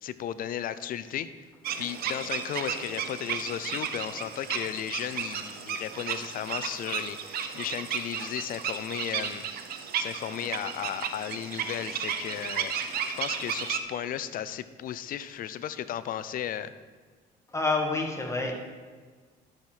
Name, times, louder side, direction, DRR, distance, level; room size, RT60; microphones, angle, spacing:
voice 1, 0.0-1.3 1.8-9.4 10.0-16.7, left 10 dB, 55° left, 14 dB, 0.5 m, -35 dB
sound 1, 1.6-13.8, right 7 dB, 65° right, 0.8 m, -34 dB
voice 2, 17.5-18.5, left 3 dB, 15° left, 1 dB, 1.7 m, -28 dB
11.5 x 6.5 x 4.5 m, 1.5 s
cardioid pair, 110°, 17 cm